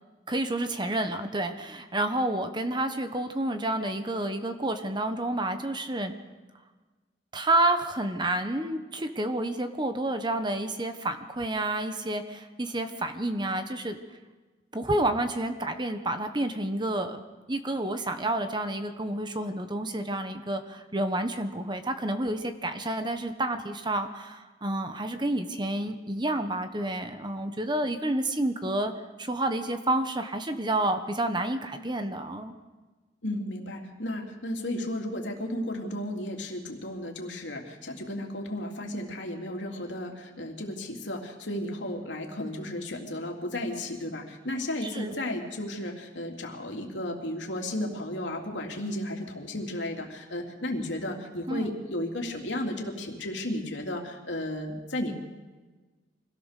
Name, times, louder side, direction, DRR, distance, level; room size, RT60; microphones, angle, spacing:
voice 1, 0.3-6.1 7.3-14.0 14.7-17.2 17.5-28.9 29.2-32.5 44.8-45.1 51.5-51.7, right 1 dB, 25° right, 7 dB, 1.2 m, -29 dB
voice 2, 33.2-55.1, left 1 dB, 85° left, 1 dB, 3.0 m, -34 dB
24.5 x 17.0 x 6.7 m, 1.3 s
head